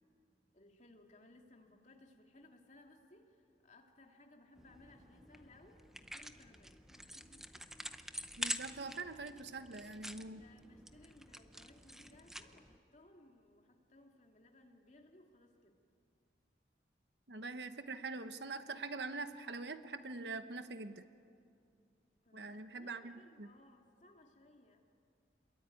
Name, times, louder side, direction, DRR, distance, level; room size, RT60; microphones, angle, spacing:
voice 1, 0.5-7.8 10.4-15.7 22.2-24.8, left 2 dB, 40° left, 2 dB, 2.5 m, -62 dB
sound 1, 4.6-12.8, right 1 dB, 5° right, 0.7 m, -47 dB
voice 2, 8.4-10.4 17.3-21.0 22.3-23.5, right 3 dB, 70° right, 10 dB, 1.1 m, -44 dB
28.0 x 22.5 x 9.2 m, 2.4 s
head